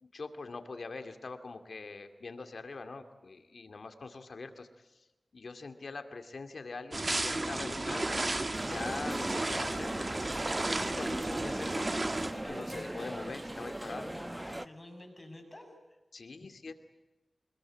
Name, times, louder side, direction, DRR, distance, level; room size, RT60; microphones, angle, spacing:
voice 1, 0.0-5.1 5.3-8.2 8.6-10.1 10.8-11.9 12.3-14.1 16.1-16.7, left 3 dB, 75° left, 8 dB, 2.3 m, -43 dB
sound 1, 6.9-12.3, right 2 dB, 35° right, 1.4 m, -33 dB
sound 2, 8.5-14.7, right 1 dB, 15° right, 0.8 m, -39 dB
voice 2, 14.0-16.0, left 1 dB, 20° left, 4 dB, 6.9 m, -50 dB
25.5 x 21.0 x 9.6 m, 1.0 s
wide cardioid pair, 95°, 0 cm